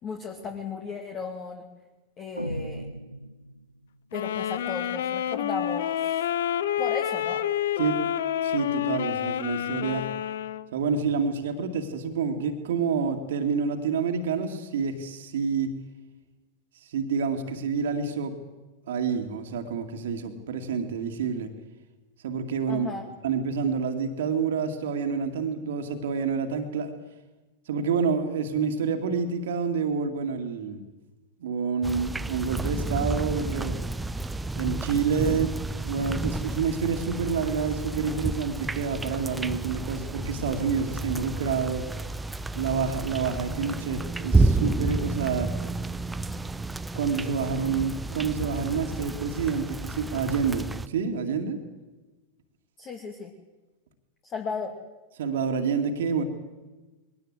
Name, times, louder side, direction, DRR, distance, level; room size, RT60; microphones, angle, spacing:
voice 1, 0.0-1.7 2.2-2.9 4.1-6.3 6.8-7.5 22.7-23.1 52.8-53.3 54.2-54.7, left 4 dB, 30° left, 4 dB, 2.4 m, -35 dB
sound 1, 2.4-4.0, right 1 dB, 90° right, 0.6 m, -36 dB
sound 2, 4.1-10.7, left 10 dB, 60° left, 0.7 m, -28 dB
voice 2, 8.4-10.0 10.7-15.7 16.9-18.3 18.9-21.5 22.2-22.9 23.2-26.9 27.7-30.8 31.4-33.8 34.5-41.9 42.5-45.5 47.0-51.6 55.2-56.2, right 5 dB, 60° right, 5 dB, 2.4 m, -28 dB
sound 3, 31.8-50.9, right 2 dB, 10° right, 0.7 m, -30 dB
22.0 x 18.5 x 8.1 m, 1.2 s
figure-of-eight pair, 90°, 0 cm